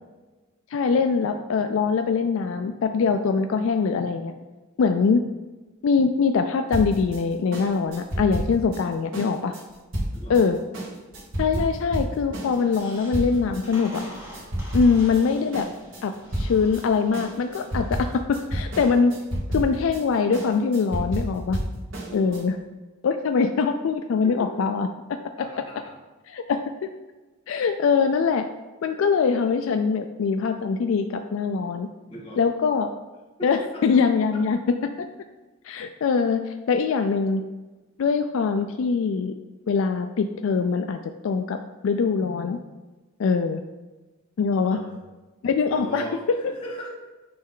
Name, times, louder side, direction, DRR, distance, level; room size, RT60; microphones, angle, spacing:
voice 1, 0.7-4.3 4.8-5.2 5.8-9.5 10.3-10.6 11.4-14.0 14.7-15.7 16.0-19.1 19.5-21.6 22.1-22.6 23.0-24.9 25.4-25.5 26.3-26.6 27.5-28.4 28.8-31.9 32.4-32.9 33.4-35.1 35.6-37.4 38.0-39.3 39.7-41.6 41.8-42.6 43.2-43.6 44.4-44.8 45.4-46.4, left 5 dB, 65° left, 7 dB, 0.3 m, -23 dB
sound 1, 6.7-13.6 13.9-15.2 15.5-22.4, right 1 dB, 65° right, 1.6 m, -31 dB
Squeak, 12.3-18.1, left 1 dB, 10° right, 1.6 m, -46 dB
voice 2, 22.1-22.4 24.2-24.5 25.4-25.9 32.1-32.4 33.4-34.0 34.3-34.4 44.6-45.0 45.7-46.9, right 1 dB, 25° left, -5 dB, 1.8 m, -38 dB
9.4 x 3.2 x 3.8 m, 1.2 s
head